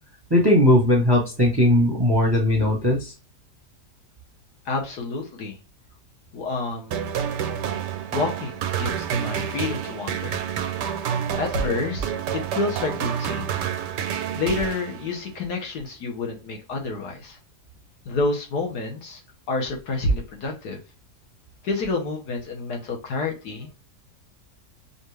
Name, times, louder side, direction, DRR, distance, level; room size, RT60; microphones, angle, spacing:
voice 1, 0.3-3.1, left 1 dB, 20° right, 1 dB, 0.7 m, -18 dB
voice 2, 4.7-5.6 6.3-7.0 8.1-10.4 11.4-13.5 14.4-17.4 18.1-19.2 19.5-20.8 21.6-23.7, left 3 dB, 70° left, 1 dB, 1.7 m, -28 dB
sound 1, 6.9-15.3, right 8 dB, 90° right, 1.2 m, -28 dB
5.0 x 2.6 x 3.3 m, 0.31 s
omnidirectional pair, 1.8 m